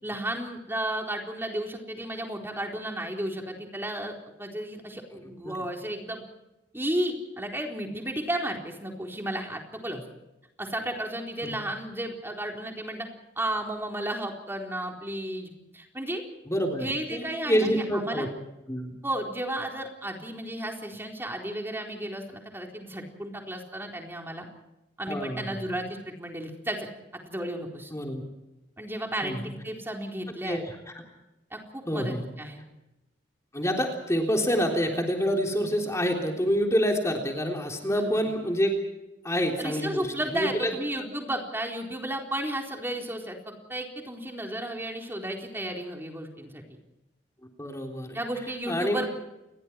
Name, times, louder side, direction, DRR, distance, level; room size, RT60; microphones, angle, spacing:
voice 1, 0.0-4.1 4.4-6.2 6.7-10.0 10.6-13.1 13.4-16.2 16.8-18.2 19.0-24.5 25.0-26.9 27.3-27.9 28.8-30.6 31.5-32.6 37.9-38.3 39.6-43.4 43.7-46.6 48.1-49.1, right 1 dB, 15° right, 1 dB, 4.1 m, -33 dB
voice 2, 16.5-18.3 18.7-18.9 25.1-25.6 27.9-28.2 29.2-29.5 30.4-31.0 31.9-32.2 33.5-38.8 39.2-40.7 47.6-48.2 48.7-49.1, equal, 15° left, 1 dB, 3.6 m, -27 dB
29.5 x 22.0 x 4.7 m, 0.95 s
head